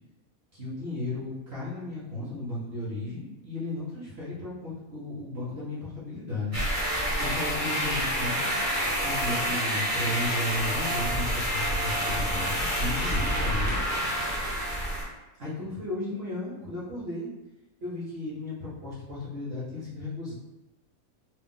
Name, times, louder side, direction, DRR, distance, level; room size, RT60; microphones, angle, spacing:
voice 1, 0.5-6.6 7.2-8.5 9.0-13.8 15.4-17.3 17.8-20.3, left 2 dB, 50° right, -7 dB, 0.8 m, -34 dB
sound 1, 6.5-15.0, equal, 15° right, 0.6 m, -28 dB
2.5 x 2.0 x 3.5 m, 1.0 s
omnidirectional pair, 1.6 m